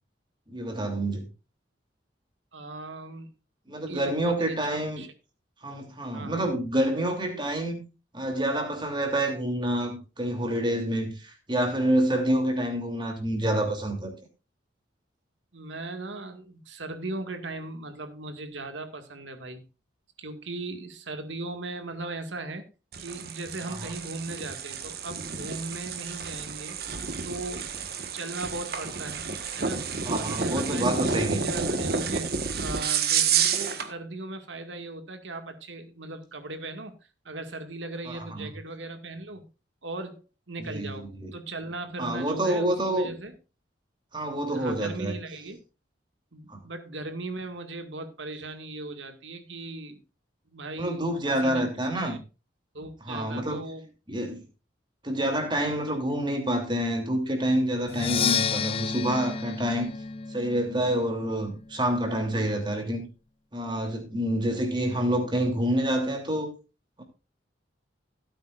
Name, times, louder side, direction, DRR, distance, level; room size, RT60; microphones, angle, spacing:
voice 1, 0.5-1.3 3.7-5.0 5.6-7.8 8.1-14.1 23.7-23.9 30.0-31.4 38.1-38.5 40.6-41.3 42.0-43.1 44.1-45.1 46.5-46.6 50.8-52.2 53.0-53.6 54.1-54.4 55.0-59.9 60.3-63.1 63.5-66.5 67.0-67.1, right 1 dB, 25° right, 3.1 m, -27 dB
voice 2, 2.5-3.3 3.9-5.1 6.1-6.5 15.5-19.6 20.2-22.6 23.0-26.8 27.2-27.7 28.1-29.2 29.5-29.8 30.1-32.3 32.6-36.9 37.2-39.5 39.8-43.3 44.3-45.6 46.3-50.0 50.5-51.6 52.0-52.2 52.7-53.9 55.7-56.0, right 2 dB, 80° right, 2.1 m, -38 dB
sound 1, 22.9-33.9, right 6 dB, 55° right, 1.5 m, -30 dB
Percussion, 57.9-61.7, left 6 dB, 30° left, 0.5 m, -30 dB
17.0 x 9.0 x 2.5 m
head